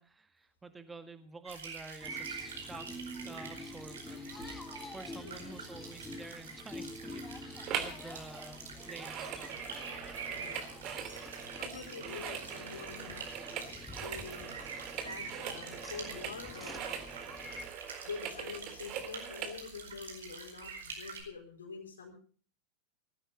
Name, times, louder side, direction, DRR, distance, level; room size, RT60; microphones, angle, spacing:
voice 1, 0.0-2.9 3.2-4.3 4.9-9.6, right 3 dB, 10° right, 10 dB, 1.9 m, -49 dB
sound 1, 1.5-21.2, right 5 dB, 65° right, 4.7 m, -46 dB
sound 2, 2.0-17.7, left 2 dB, 5° left, 2.5 m, -48 dB
voice 2, 5.2-5.6 10.1-10.6 11.6-13.4 14.0-14.5 15.0-16.9 18.0-22.1, left 5 dB, 70° left, 2 dB, 4.4 m, -46 dB
sound 3, 7.7-8.0 8.3-19.6 20.1-20.2, right 8 dB, 35° right, 2.7 m, -42 dB
19.0 x 15.5 x 4.0 m, 0.43 s
figure-of-eight pair, 90°, 0 cm